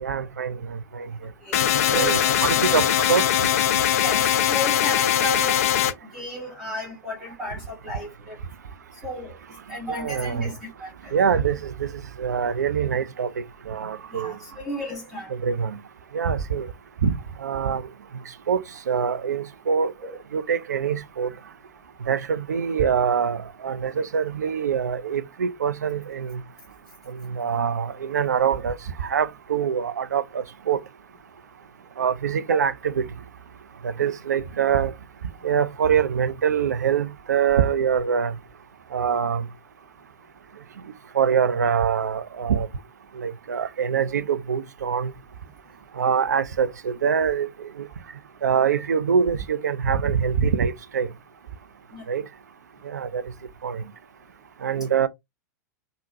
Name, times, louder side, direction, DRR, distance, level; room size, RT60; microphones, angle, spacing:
voice 1, 0.0-0.6 0.9-1.1 1.9-3.2 9.9-10.5 11.1-11.9 12.2-13.3 13.7-14.3 15.4-15.7 16.1-16.7 17.0-17.1 17.4-17.8 18.5-18.6 18.9-19.9 20.3-21.3 22.1-26.4 27.3-28.8 29.1-30.8 32.0-33.0 33.8-34.9 35.4-38.3 38.9-39.5 41.2-42.7 43.2-45.1 46.0-47.5 48.4-51.1 52.1-52.2 52.9-53.2 53.6-53.8 54.6-55.1, right 7 dB, 70° right, 0.4 m, -24 dB
voice 2, 1.4-2.8 4.0-5.6 6.0-8.4 8.9-9.4 9.7-11.2 14.1-15.3 32.5-32.6 51.9-52.1, right 1 dB, 5° right, 1.3 m, -33 dB
sound 1, 1.5-5.9, left 11 dB, 55° left, 0.3 m, -21 dB
3.6 x 2.1 x 2.6 m
figure-of-eight pair, 95°, 10 cm